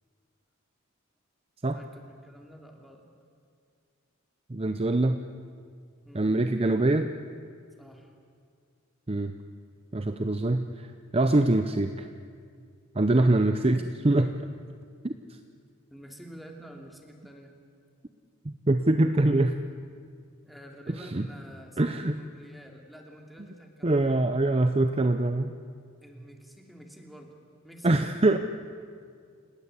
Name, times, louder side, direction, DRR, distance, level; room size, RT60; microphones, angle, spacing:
voice 1, 1.7-3.0 6.1-6.4 7.8-8.1 13.7-14.1 15.9-17.5 20.4-24.1 26.0-27.3 27.6-27.9, equal, ahead, 1 dB, 2.8 m, -49 dB
voice 2, 4.5-5.2 6.1-7.1 9.1-9.3 9.9-10.9 11.1-12.1 13.0-14.3 15.0-15.1 18.4-19.6 20.9-21.3 21.8-22.2 23.8-25.5 27.8-28.4, right 2 dB, 30° right, 8 dB, 0.7 m, -24 dB
29.5 x 18.0 x 8.3 m, 2.2 s
head